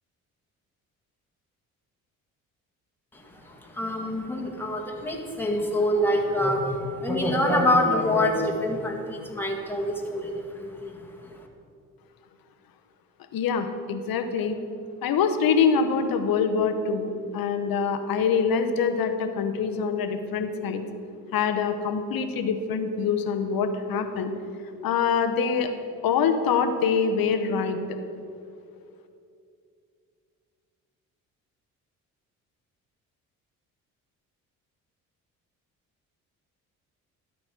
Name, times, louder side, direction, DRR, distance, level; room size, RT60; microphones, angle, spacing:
voice 1, 3.1-11.5, left 1 dB, 5° left, 0 dB, 1.7 m, -26 dB
voice 2, 13.3-14.6 15.0-20.8 21.3-24.3 24.8-25.7 26.0-28.0, left 6 dB, 55° left, 8 dB, 1.0 m, -25 dB
12.0 x 4.3 x 6.1 m, 2.5 s
hypercardioid pair, 50°, 42 cm